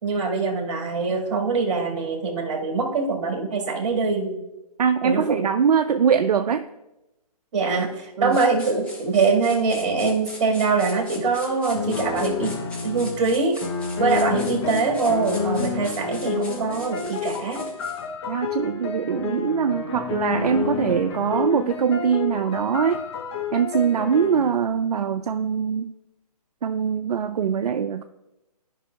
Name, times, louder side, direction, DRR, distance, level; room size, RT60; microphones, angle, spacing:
voice 1, 0.0-4.4 5.0-5.4 7.5-12.5 12.8-13.6 14.0-17.7, right 4 dB, 50° right, 1 dB, 1.7 m, -23 dB
voice 2, 4.8-6.6 8.2-8.4 18.3-23.0 23.5-25.9 26.6-28.0, right 7 dB, 75° right, 8 dB, 0.4 m, -22 dB
sound 1, 8.3-18.1, left 1 dB, 5° left, 0.9 m, -41 dB
sound 2, 11.7-24.5, left 6 dB, 45° left, 0.9 m, -30 dB
13.5 x 5.3 x 2.3 m, 0.95 s
figure-of-eight pair, 140°, 20 cm